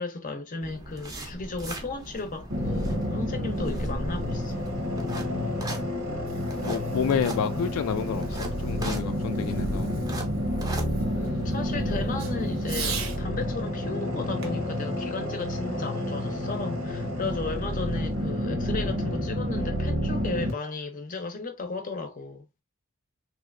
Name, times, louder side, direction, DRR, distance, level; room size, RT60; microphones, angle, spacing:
voice 1, 0.0-4.6 11.1-22.4, left 3 dB, 40° left, 0.6 m, -35 dB
sound 1, 0.6-11.5, right 1 dB, 15° right, 0.6 m, -39 dB
sound 2, 2.5-20.5, equal, 90° right, 1.2 m, -29 dB
Fireworks, 6.1-13.2 14.4-16.0, right 6 dB, 70° right, 0.8 m, -42 dB
voice 2, 6.6-9.9, left 7 dB, 80° left, 0.3 m, -30 dB
3.1 x 2.7 x 2.4 m
head